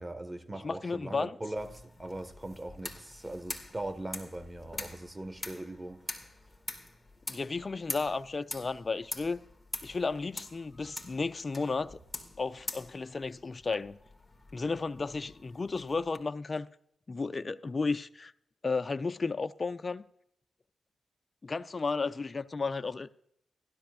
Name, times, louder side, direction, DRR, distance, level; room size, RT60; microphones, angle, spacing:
voice 1, 0.0-6.3, right 1 dB, 20° right, 1.6 m, -40 dB
voice 2, 0.6-1.3 7.3-9.4 9.8-12.0 12.4-14.0 14.5-16.7 17.1-18.3 18.6-20.0 21.4-23.1, left 4 dB, 40° left, 0.5 m, -33 dB
sound 1, 1.6-16.2, left 2 dB, 15° left, 2.2 m, -45 dB
16.0 x 12.5 x 2.5 m
supercardioid pair, 45°, 0 cm